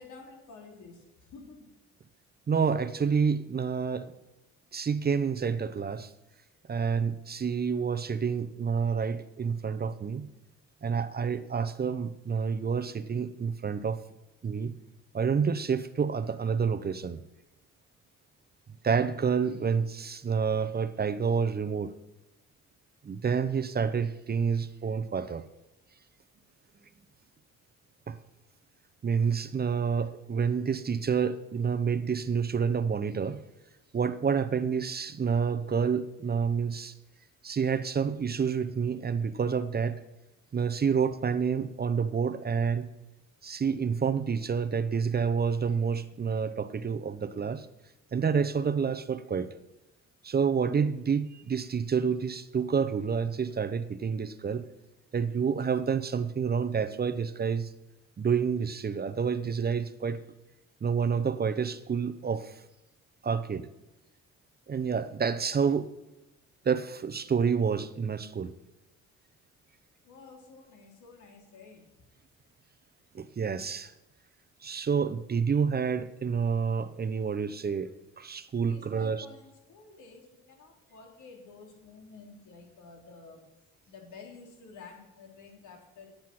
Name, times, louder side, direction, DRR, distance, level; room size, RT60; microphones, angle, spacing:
voice 1, 0.0-1.7 70.0-71.9 78.6-83.4 83.9-86.1, left 4 dB, 75° left, 3.5 m, -51 dB
voice 2, 2.5-4.1 4.7-6.1 6.7-10.3 10.8-14.0 14.4-14.7 15.1-17.2 18.8-21.9 23.0-25.4 28.1-28.2 29.0-33.4 33.9-36.9 37.4-40.0 40.5-42.9 43.4-47.7 48.1-49.5 50.2-54.6 55.1-57.7 58.2-60.2 60.8-62.6 63.2-63.7 64.7-65.9 66.6-68.5 73.1-73.9 74.6-77.9 78.2-79.3, right 6 dB, 30° right, 0.7 m, -28 dB
10.5 x 9.4 x 6.1 m
cardioid pair, 90°, 30 cm